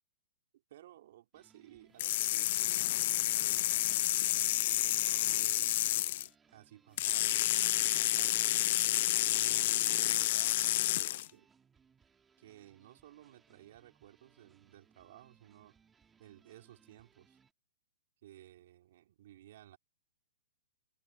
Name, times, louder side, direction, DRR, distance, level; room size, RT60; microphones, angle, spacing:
voice 1, 0.7-3.8 4.6-7.6 7.9-8.5 9.2-11.5 12.4-15.8 16.2-17.4 18.2-19.8, right 13 dB, 55° right, 3.6 m, -57 dB
sound 1, 1.3-17.5, right 6 dB, 15° right, 4.3 m, -68 dB
Electric shock, 2.0-6.3 7.0-11.3, left 15 dB, 50° left, 0.3 m, -30 dB
hypercardioid pair, 145°, 0 cm